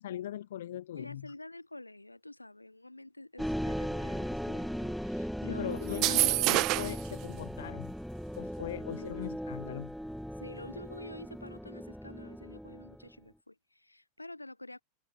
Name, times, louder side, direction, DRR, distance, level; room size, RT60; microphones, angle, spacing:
voice 1, 0.0-1.3 5.5-7.9 8.4-9.9, left 12 dB, 60° left, 2.8 m, -40 dB
voice 2, 0.9-6.6 9.0-9.2 10.4-14.8, left 2 dB, 85° left, 7.2 m, -48 dB
sound 1, 3.4-13.1, equal, ahead, 7.8 m, -38 dB
sound 2, 5.9-7.1, right 21 dB, 40° right, 2.3 m, -27 dB
figure-of-eight pair, 90°, 0 cm